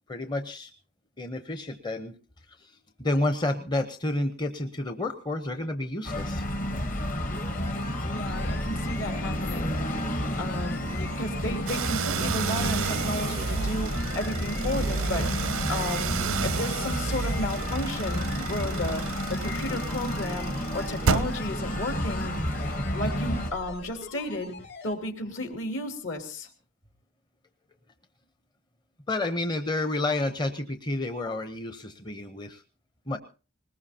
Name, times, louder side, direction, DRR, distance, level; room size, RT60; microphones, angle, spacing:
voice 1, 0.1-0.7 1.2-2.1 2.5-6.4 29.1-32.6 33.1-33.2, left 2 dB, 20° left, 8 dB, 0.7 m, -30 dB
sound 1, 6.0-23.5, left 1 dB, 40° left, 1.2 m, -31 dB
sound 2, 7.1-24.9 25.5-25.6, left 4 dB, 85° left, 4.0 m, -45 dB
voice 2, 8.0-9.8 10.0-15.3 15.7-16.2 16.4-22.3 22.9-24.5 24.8-26.5, left 1 dB, 70° left, 5 dB, 2.7 m, -33 dB
sound 3, 11.7-24.0, right 5 dB, 90° right, 0.7 m, -32 dB
20.5 x 20.0 x 2.8 m, 0.33 s
head